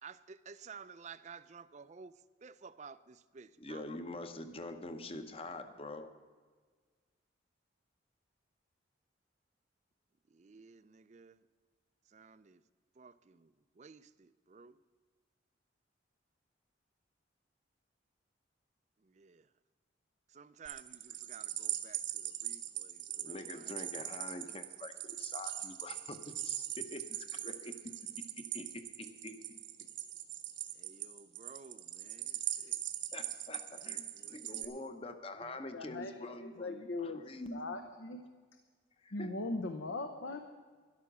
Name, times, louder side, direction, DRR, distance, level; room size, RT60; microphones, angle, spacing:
voice 1, 0.0-3.9 10.3-11.4 12.1-12.6 13.0-14.8 19.0-19.5 20.3-23.7 30.8-32.8 33.7-35.0, right 5 dB, 35° right, 15 dB, 0.4 m, -54 dB
voice 2, 3.6-6.1 23.2-27.7 28.5-29.6 33.1-37.8 39.0-39.3, left 2 dB, 30° left, 9 dB, 0.9 m, -45 dB
sound 1, 20.7-34.7, right 13 dB, 70° right, 1.1 m, -41 dB
voice 3, 35.7-36.1 36.4-37.2 37.5-38.2 39.1-40.4, left 2 dB, 75° left, 6 dB, 0.9 m, -39 dB
12.5 x 11.5 x 6.1 m, 1.5 s
head